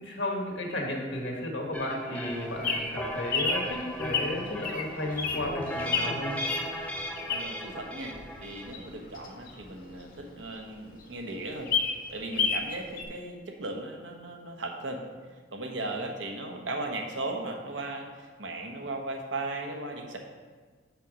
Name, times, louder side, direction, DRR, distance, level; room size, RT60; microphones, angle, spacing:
voice 1, 0.0-6.4, left 1 dB, 85° left, 0 dB, 1.5 m, -33 dB
sound 1, 1.7-8.7, equal, 5° left, 0.6 m, -37 dB
Bird vocalization bird call bird song, 2.2-7.7 8.1-10.3 10.7-10.8 11.0-11.1 11.4-12.7 13.0-13.1, left 5 dB, 50° left, 0.8 m, -31 dB
voice 2, 7.3-11.7 12.1-15.0 15.5-20.2, right 2 dB, 80° right, 2 dB, 1.0 m, -37 dB
6.0 x 5.7 x 5.0 m, 1.5 s
head